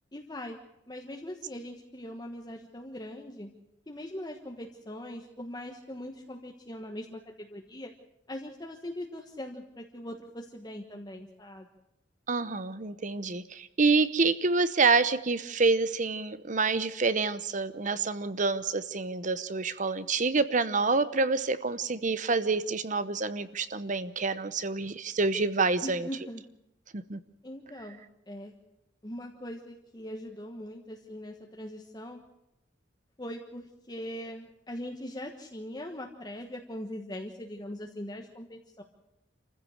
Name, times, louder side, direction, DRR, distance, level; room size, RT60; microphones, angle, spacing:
voice 1, 0.1-0.6 0.9-3.5 3.9-7.9 8.3-11.7 25.8-26.4 27.4-28.0 28.3-28.5 29.0-32.2 33.2-38.8, left 1 dB, 20° left, 1 dB, 1.3 m, -41 dB
voice 2, 12.3-26.1 26.9-27.2, right 4 dB, 40° right, 13 dB, 0.9 m, -27 dB
27.0 x 15.0 x 6.5 m, 0.84 s
head